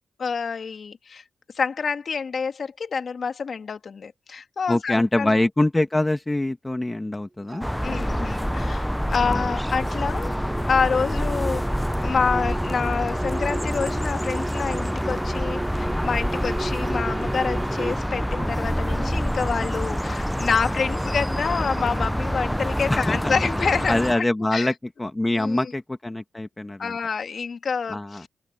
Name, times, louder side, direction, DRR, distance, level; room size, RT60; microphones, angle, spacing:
voice 1, 0.2-1.2 1.5-5.3 7.8-10.4 10.7-11.6 12.0-24.3 24.5-24.7 25.4-25.7 26.8-28.3, left 5 dB, 60° left, 2.4 m, -27 dB
voice 2, 4.7-7.6 9.2-9.5 22.9-23.4 23.9-24.7 25.0-27.0 27.9-28.2, left 2 dB, 20° left, 2.0 m, -24 dB
Dog, 7.5-8.6 9.0-9.7 10.7-11.5 13.4-14.1 18.3-19.7, right 4 dB, 45° right, 5.6 m, -44 dB
sound 1, 7.6-24.2, equal, ahead, 0.8 m, -26 dB
sound 2, 7.6-17.9, right 2 dB, 25° right, 1.7 m, -35 dB
open air
cardioid pair, 60°, 0 cm